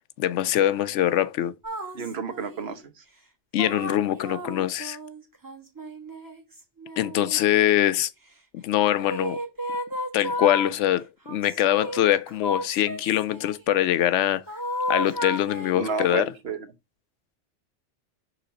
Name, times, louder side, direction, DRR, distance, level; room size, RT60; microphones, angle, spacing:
voice 1, 0.2-1.5 3.5-5.0 7.0-8.1 8.6-9.4 10.1-14.4 14.9-16.3, left 12 dB, 85° left, 0.9 m, -23 dB
sound 1, 1.6-2.8 3.6-7.9 9.0-10.8 11.3-13.6 14.5-16.3, left 1 dB, 20° right, 1.0 m, -33 dB
voice 2, 1.9-2.8 15.7-16.7, right 5 dB, 65° right, 1.2 m, -30 dB
5.8 x 4.0 x 5.0 m
omnidirectional pair, 1.2 m